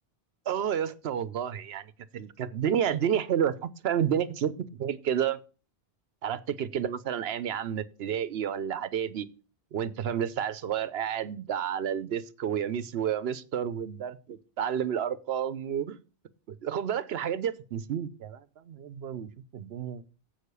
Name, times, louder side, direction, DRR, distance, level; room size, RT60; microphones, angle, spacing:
voice 1, 0.5-5.4 6.2-9.3 9.7-16.0 16.6-18.4 18.7-20.0, right 9 dB, 75° right, 0.9 m, -30 dB
7.9 x 6.5 x 6.7 m
omnidirectional pair, 1.1 m